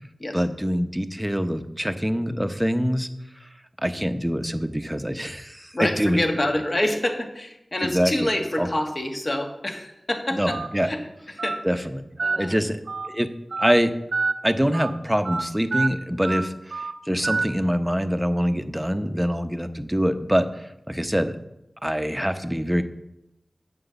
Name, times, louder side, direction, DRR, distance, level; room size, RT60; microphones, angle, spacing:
voice 1, 0.3-3.1 3.4-3.5 3.8-6.2 7.8-8.1 8.6-8.7 10.3-10.9 11.6-13.3 13.6-13.9 14.4-21.4 21.8-22.8, equal, 10° right, 9 dB, 0.8 m, -25 dB
voice 2, 5.7-11.0 11.4-11.8 12.2-12.6, left 1 dB, 40° left, 3 dB, 1.6 m, -27 dB
Telephone, 10.5-10.7 11.4-11.6 12.2-12.4 12.9-13.1 13.5-13.7 14.1-14.3 14.7-14.9 15.2-15.4 15.7-15.9 16.2-16.4 16.7-16.9 17.2-17.4, right 4 dB, 80° right, 0.6 m, -26 dB
7.7 x 6.1 x 6.8 m, 0.87 s
cardioid pair, 45°, 0 cm